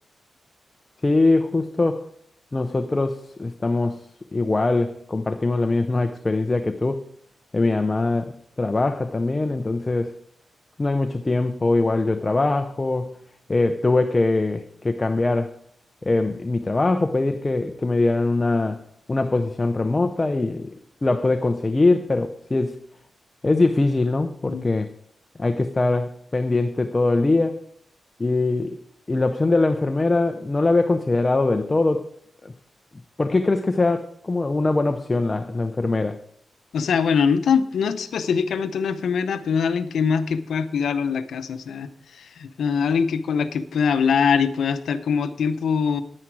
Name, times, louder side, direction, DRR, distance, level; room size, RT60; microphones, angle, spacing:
voice 1, 1.0-2.0 2.5-4.0 4.3-7.0 7.5-10.1 10.8-13.2 13.5-15.5 16.0-18.8 19.1-20.8 21.0-22.8 23.4-24.9 25.4-27.6 28.2-28.8 29.1-32.1 32.4-32.5 33.2-36.2, left 2 dB, 25° left, 0.6 m, -22 dB
voice 2, 36.7-41.9 42.2-46.0, left 6 dB, 80° left, 0.8 m, -23 dB
10.0 x 9.8 x 4.7 m
wide cardioid pair, 105°, 0 cm